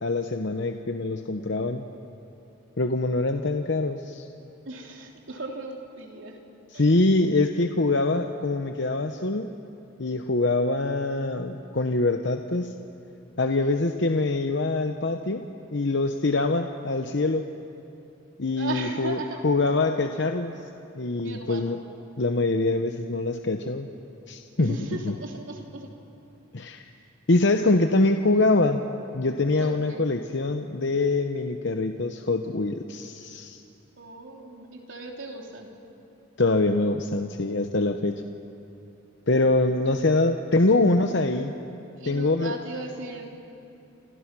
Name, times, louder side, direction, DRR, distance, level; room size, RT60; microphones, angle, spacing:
voice 1, 0.0-1.8 2.8-4.3 6.7-9.5 10.0-12.7 13.4-15.5 15.7-17.4 18.4-20.5 21.0-21.8 22.2-23.9 24.3-24.8 25.0-25.2 26.5-26.8 27.3-28.8 29.1-33.6 36.4-38.2 39.3-41.5 42.1-42.6, left 2 dB, 55° left, 6 dB, 0.9 m, -24 dB
voice 2, 4.6-6.4 6.7-6.9 13.4-13.7 18.5-19.4 21.2-21.7 24.6-25.9 29.6-30.1 34.0-35.7 42.0-43.3, right 2 dB, 70° right, 1 dB, 3.4 m, -37 dB
28.5 x 28.0 x 6.1 m, 2.7 s
head